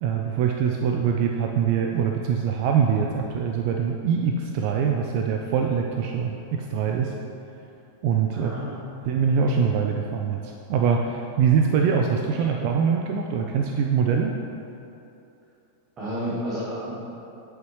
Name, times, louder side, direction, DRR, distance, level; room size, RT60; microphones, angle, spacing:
voice 1, 0.0-7.1 8.0-8.5 9.1-14.3, right 6 dB, 45° right, 2 dB, 0.4 m, -23 dB
voice 2, 8.3-8.8 16.0-17.0, equal, 25° right, -10 dB, 1.7 m, -31 dB
9.2 x 5.5 x 3.2 m, 2.8 s
figure-of-eight pair, 90°, 0 cm